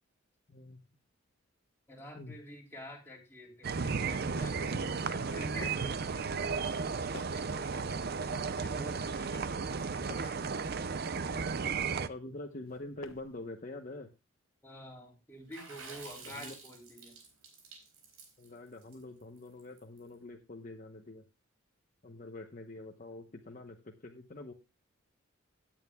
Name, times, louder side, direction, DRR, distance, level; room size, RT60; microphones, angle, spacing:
voice 1, 0.5-0.8 2.1-2.4 11.2-11.6 12.1-14.1 16.3-16.5 18.4-21.3 22.0-24.5, left 2 dB, 40° left, 3 dB, 0.9 m, -46 dB
voice 2, 1.9-10.4 14.6-17.2, equal, 10° left, -2 dB, 3.1 m, -49 dB
sound 1, 3.6-12.1, right 5 dB, 45° right, 0.5 m, -34 dB
sound 2, 5.2-6.0 6.7-7.5 8.2-8.9 9.6-10.4 11.2-12.0 12.6-13.4, left 3 dB, 75° left, 1.0 m, -51 dB
Water / Splash splatter, 15.5-20.0, right 4 dB, 90° right, 4.2 m, -50 dB
17.0 x 9.0 x 2.2 m, 0.26 s
head